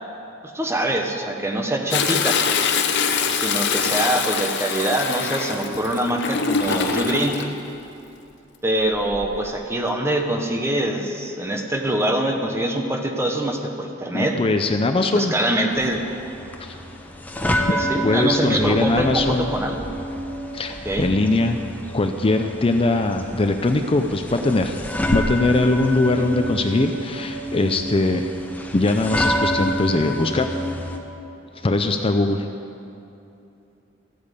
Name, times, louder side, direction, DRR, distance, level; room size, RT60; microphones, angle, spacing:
voice 1, 0.4-2.4 3.3-7.4 8.6-14.4 15.0-16.0 17.7-19.9 20.8-21.1 26.1-26.2, right 1 dB, 15° right, 3 dB, 1.1 m, -24 dB
Toilet flush, 1.9-7.5 8.9-9.4 9.9-10.0, left 6 dB, 60° left, 0.9 m, -24 dB
voice 2, 14.1-15.3 16.6-16.7 18.0-19.5 20.5-21.6 21.9-24.8 25.1-28.3 28.7-30.5 31.6-32.5, left 2 dB, 30° left, 6 dB, 0.5 m, -21 dB
sound 1, 15.7-31.0, equal, 10° left, 0.9 m, -28 dB
14.0 x 8.6 x 8.3 m, 2.8 s
head